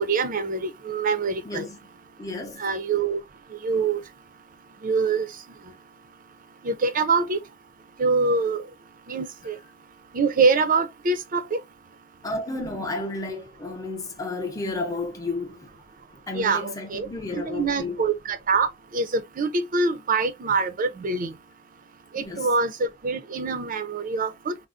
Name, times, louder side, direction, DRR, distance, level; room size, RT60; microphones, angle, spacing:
voice 1, 0.0-1.7 2.6-3.2 3.6-4.0 4.8-5.3 6.6-7.4 8.0-8.6 9.1-9.6 10.1-11.6 16.3-17.1 17.4-21.3 22.1-24.6, right 4 dB, 45° right, 0.5 m, -24 dB
voice 2, 1.4-1.8 2.2-2.6 12.2-15.7 16.1-18.0 22.1-22.5, left 2 dB, 20° left, 0.7 m, -32 dB
3.5 x 2.0 x 2.4 m
head